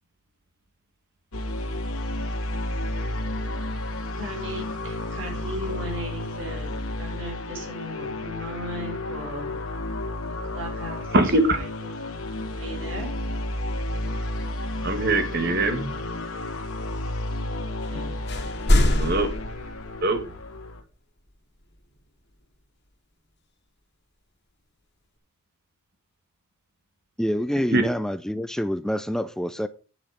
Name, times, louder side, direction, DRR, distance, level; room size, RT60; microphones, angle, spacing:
sound 1, 1.3-20.8, left 1 dB, 80° left, 2.2 m, -32 dB
voice 1, 4.2-9.6 10.3-11.1 11.5-11.7 12.6-13.1 17.9-18.1, equal, 65° right, 5.5 m, -36 dB
voice 2, 11.1-11.6 14.8-15.9 19.0-19.3 20.0-20.2 27.7-27.8, right 2 dB, 50° right, 2.0 m, -21 dB
sound 2, 17.8-18.0 18.3-20.3, left 1 dB, 50° left, 2.6 m, -23 dB
voice 3, 27.2-29.7, equal, ahead, 0.4 m, -27 dB
10.0 x 7.9 x 5.1 m
head